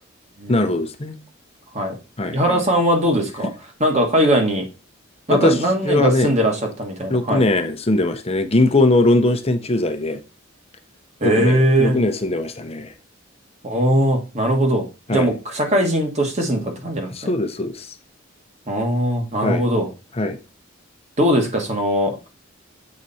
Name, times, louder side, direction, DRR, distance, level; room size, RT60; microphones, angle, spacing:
voice 1, 0.5-1.2 2.2-2.6 5.3-5.6 5.8-6.3 7.1-10.2 11.2-12.9 15.1-15.3 17.1-17.9 19.4-19.6 20.2-20.4, left 2 dB, 30° left, 0.8 m, -20 dB
voice 2, 2.3-3.5 3.8-4.6 5.3-7.4 11.2-12.0 13.6-14.8 15.1-17.3 18.7-19.9 21.2-22.3, equal, 35° right, 1.6 m, -20 dB
7.6 x 4.1 x 4.2 m
head